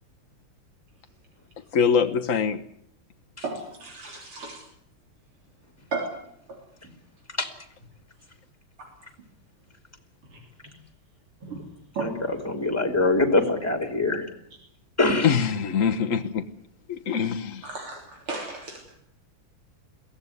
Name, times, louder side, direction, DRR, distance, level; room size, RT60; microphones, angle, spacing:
voice 1, 1.7-2.6 15.2-16.4 17.1-17.6, left 6 dB, 45° left, 7 dB, 1.3 m, -23 dB
voice 2, 3.4-4.6 5.9-6.1 6.5-6.6 10.3-10.4 11.4-11.7 12.0-12.3 17.6-19.0, right 3 dB, 85° right, 2 dB, 4.4 m, -34 dB
voice 3, 12.0-14.2 15.0-15.3, left 2 dB, 5° left, 7 dB, 3.1 m, -23 dB
22.5 x 16.0 x 9.6 m, 0.73 s
omnidirectional pair, 2.3 m